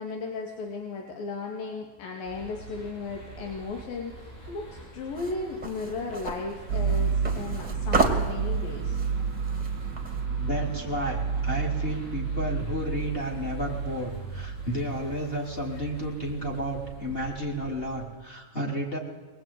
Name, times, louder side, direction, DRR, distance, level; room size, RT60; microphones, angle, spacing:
voice 1, 0.0-9.0, left 4 dB, 80° left, 1 dB, 4.0 m, -35 dB
sound 1, 2.2-18.0, right 4 dB, 60° left, 7.3 m, -44 dB
sound 2, 5.2-10.2, right 3 dB, 15° right, 2.0 m, -31 dB
sound 3, 6.7-14.8, right 6 dB, 35° right, 2.3 m, -30 dB
voice 2, 10.4-19.0, equal, 15° left, 0 dB, 4.2 m, -32 dB
23.5 x 20.0 x 9.4 m, 1.3 s
omnidirectional pair, 4.0 m